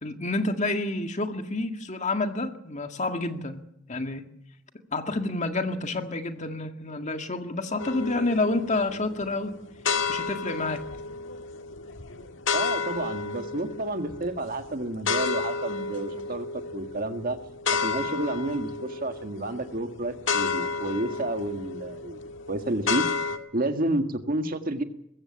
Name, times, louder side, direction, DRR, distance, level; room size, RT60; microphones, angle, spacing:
voice 1, 0.0-3.6 3.9-4.3 4.9-9.5 10.1-10.8, left 2 dB, 35° left, 6 dB, 1.9 m, -29 dB
sound 1, 7.8-23.4, left 5 dB, 65° left, 1.7 m, -32 dB
voice 2, 12.5-17.4 17.7-22.2 22.5-23.1 23.5-24.8, right 2 dB, 45° right, 7 dB, 1.8 m, -30 dB
21.5 x 15.5 x 8.7 m, 0.78 s
head